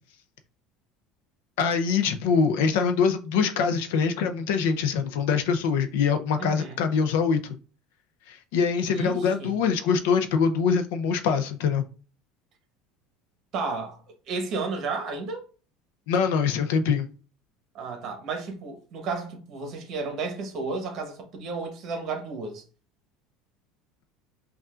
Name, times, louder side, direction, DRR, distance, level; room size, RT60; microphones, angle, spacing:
voice 1, 1.6-7.4 8.3-11.8 16.1-17.1, left 6 dB, 80° left, 0.6 m, -24 dB
voice 2, 6.4-6.8 8.9-9.6 13.5-15.4 17.7-22.6, right 4 dB, 40° right, 1.1 m, -33 dB
5.4 x 2.4 x 2.5 m
cardioid pair, 150°, 0 cm